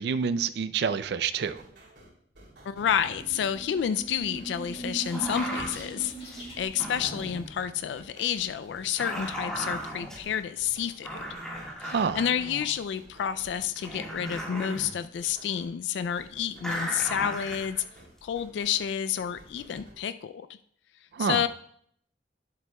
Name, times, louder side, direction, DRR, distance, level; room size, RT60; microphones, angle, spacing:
voice 1, 0.0-1.6 11.8-12.2 21.1-21.4, right 6 dB, 65° right, 14 dB, 0.4 m, -28 dB
sound 1, 1.3-20.0, right 1 dB, 80° right, 2.8 m, -53 dB
sound 2, 2.5-7.9, right 2 dB, 35° left, 2.0 m, -41 dB
voice 2, 2.7-11.2 11.8-17.8 18.2-20.5 21.2-21.5, left 9 dB, 80° left, 12 dB, 0.3 m, -30 dB
sound 3, 5.1-5.8 6.3-7.5 8.4-10.2 10.8-10.9 11.0-12.8 13.4-13.5 13.8-14.9 16.6-18.3 19.5-19.8, equal, 5° left, 1.5 m, -36 dB
11.0 x 7.6 x 2.2 m, 0.66 s
head